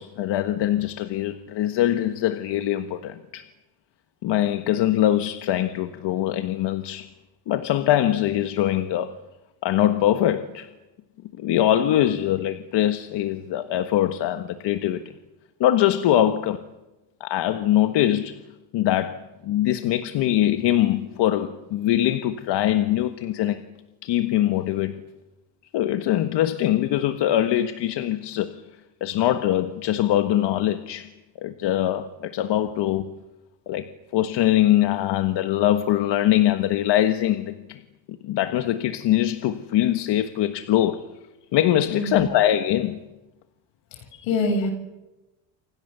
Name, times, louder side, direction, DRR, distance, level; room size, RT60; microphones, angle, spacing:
voice 1, 0.0-3.4 4.2-7.1 7.5-9.1 9.6-10.7 11.4-15.0 15.6-16.6 17.2-18.4 18.7-23.6 24.0-25.0 25.7-28.6 29.0-31.1 31.4-33.1 33.7-37.8 38.2-41.1 41.5-43.1 44.1-44.2, left 12 dB, 65° left, 1.6 m, -22 dB
voice 2, 41.9-42.3 43.9-44.7, left 2 dB, 85° left, 7.3 m, -26 dB
29.0 x 26.0 x 6.9 m
cardioid pair, 110°, 44 cm